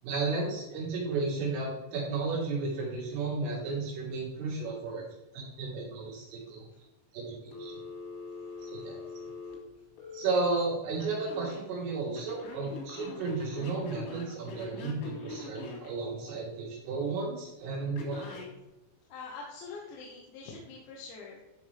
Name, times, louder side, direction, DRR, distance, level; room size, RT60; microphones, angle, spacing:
voice 1, 0.0-5.1 5.3-6.7 7.1-7.7 8.6-9.0 10.1-18.4, right 3 dB, 80° right, -6 dB, 6.3 m, -33 dB
Telephone, 7.5-10.3 11.0-11.6 12.2-15.9 18.0-18.5, left 4 dB, 90° left, 4.9 m, -43 dB
voice 2, 19.1-21.4, left 4 dB, 70° left, -2 dB, 3.3 m, -44 dB
13.5 x 6.2 x 3.5 m, 0.99 s
omnidirectional pair, 5.8 m